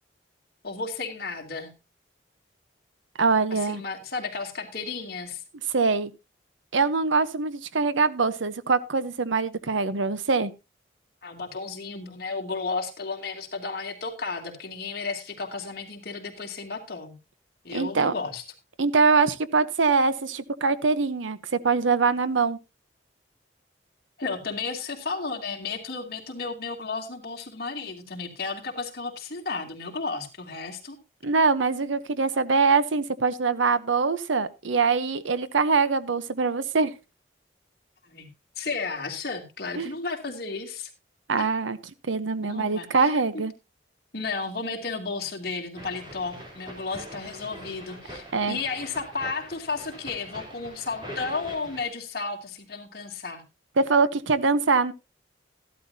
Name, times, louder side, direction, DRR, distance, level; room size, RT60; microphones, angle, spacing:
voice 1, 0.6-1.7 3.5-5.4 11.2-17.1 17.6-18.4 24.2-31.0 38.0-38.3 38.6-40.9 41.4-41.5 42.4-43.4 44.1-53.4, left 4 dB, 55° left, 1 dB, 2.6 m, -33 dB
voice 2, 3.2-3.8 5.7-6.1 6.7-10.5 17.7-18.1 18.8-22.6 31.2-36.9 39.8-39.9 41.3-41.8 42.1-43.5 48.3-48.6 53.8-54.9, right 4 dB, 85° right, 14 dB, 0.8 m, -23 dB
sound 1, 45.8-51.9, equal, 25° right, 3.5 m, -43 dB
14.0 x 12.0 x 2.7 m, 0.26 s
head